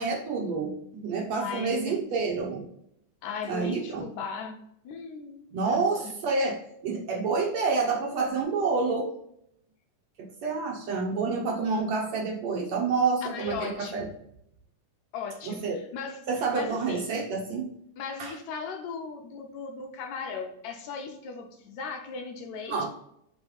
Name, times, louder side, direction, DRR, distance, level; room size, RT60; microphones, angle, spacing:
voice 1, 0.0-2.7 3.5-4.0 5.5-9.1 10.2-14.1 15.5-15.8 16.3-17.7 18.2-18.3 22.7-22.9, right 4 dB, 65° right, -1 dB, 1.9 m, -28 dB
voice 2, 1.4-2.0 3.2-4.6 4.8-6.1 13.3-14.1 15.1-16.3 16.5-17.0 18.0-22.9, left 5 dB, 75° left, 3 dB, 1.9 m, -37 dB
5.3 x 3.3 x 5.5 m, 0.74 s
omnidirectional pair, 3.8 m